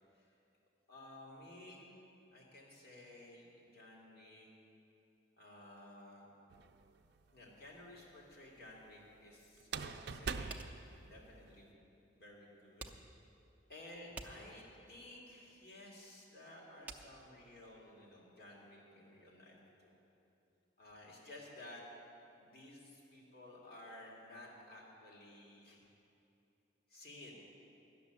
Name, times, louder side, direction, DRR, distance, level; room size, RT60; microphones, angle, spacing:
voice 1, 0.9-2.0 2.3-4.5 5.4-6.3 7.3-11.7 12.1-12.9 13.7-20.0 20.8-21.8 22.4-25.8 26.9-27.4, left 1 dB, 50° left, -3 dB, 2.2 m, -55 dB
sound 1, 6.5-7.2 9.6-11.6, right 5 dB, 55° right, 0.5 m, -43 dB
sound 2, 10.5-18.1, right 3 dB, 10° right, 0.6 m, -53 dB
12.0 x 6.9 x 9.9 m, 2.8 s
head